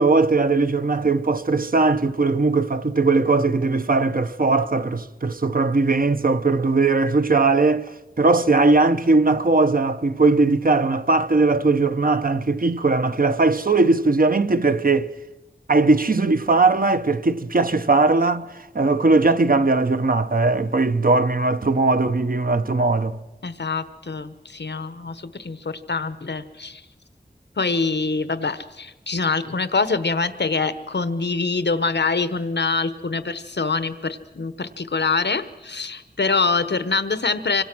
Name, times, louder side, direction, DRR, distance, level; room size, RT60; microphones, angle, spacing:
voice 1, 0.0-7.9 8.2-15.1 15.7-18.5 18.7-23.2, right 3 dB, 55° right, 1.0 m, -19 dB
voice 2, 23.4-26.8 27.6-37.6, left 4 dB, 85° left, 1.1 m, -25 dB
26.0 x 25.0 x 6.2 m
wide cardioid pair, 55°, 17 cm